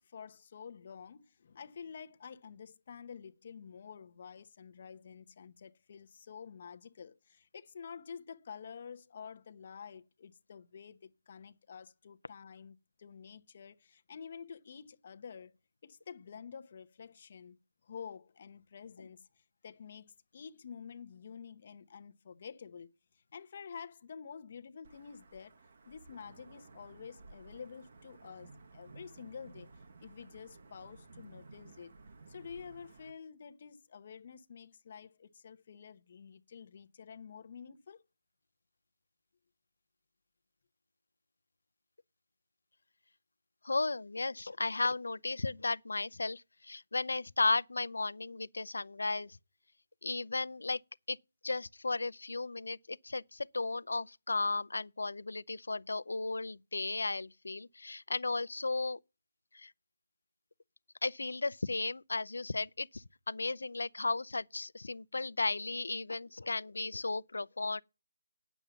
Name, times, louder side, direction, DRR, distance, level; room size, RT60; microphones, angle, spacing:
voice 1, 0.0-15.6 15.8-25.6 25.9-31.9 32.3-38.0, left 6 dB, 35° left, 0.8 m, -49 dB
Wind / Thunder / Rain, 24.8-33.1, right 3 dB, 40° right, 1.2 m, -56 dB
voice 2, 43.6-49.4 50.0-50.8 51.1-51.2 51.4-59.0 59.5-59.7 61.0-67.8, left 3 dB, 80° left, 0.6 m, -35 dB
9.0 x 7.2 x 7.0 m
figure-of-eight pair, 170°, 0 cm